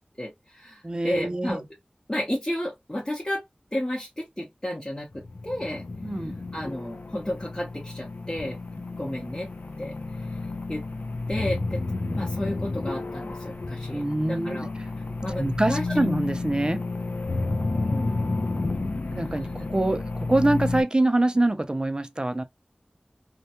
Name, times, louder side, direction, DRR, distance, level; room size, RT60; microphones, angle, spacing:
voice 1, 0.2-1.7 2.1-3.4 3.7-5.9 6.5-8.6 8.9-9.5 9.8-9.9 10.7-10.8 11.3-11.8 12.1-14.0 14.3-14.7 15.2-16.1 17.7-18.6, left 1 dB, 20° left, 0.8 m, -32 dB
voice 2, 0.8-1.6 6.0-6.4 12.1-12.2 13.9-14.7 15.3-16.8 19.1-22.4, right 1 dB, 30° right, 0.4 m, -25 dB
sound 1, 5.1-20.8, left 3 dB, 60° left, 0.4 m, -31 dB
2.2 x 2.2 x 2.8 m
wide cardioid pair, 45°, 3 cm